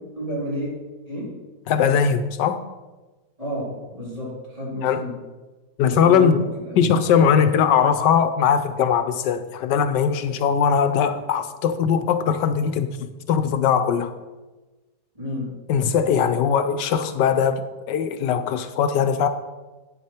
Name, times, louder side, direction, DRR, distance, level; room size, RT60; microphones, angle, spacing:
voice 1, 0.2-1.4 3.4-5.1 5.8-6.9 15.2-15.5, equal, 20° right, 3.8 m, -31 dB
voice 2, 1.7-2.6 4.8-5.0 5.8-6.4 6.8-14.1 15.7-19.3, left 7 dB, 80° left, 1.3 m, -20 dB
10.5 x 9.0 x 4.4 m
omnidirectional pair, 1.8 m